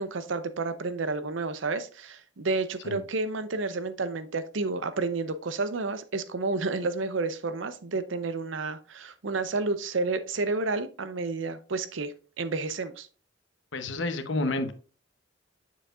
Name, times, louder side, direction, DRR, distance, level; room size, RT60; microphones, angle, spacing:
voice 1, 0.0-13.1, right 3 dB, 85° right, 12 dB, 0.7 m, -30 dB
voice 2, 13.7-14.7, left 2 dB, 75° left, 8 dB, 0.9 m, -29 dB
7.1 x 6.8 x 2.4 m, 0.37 s
head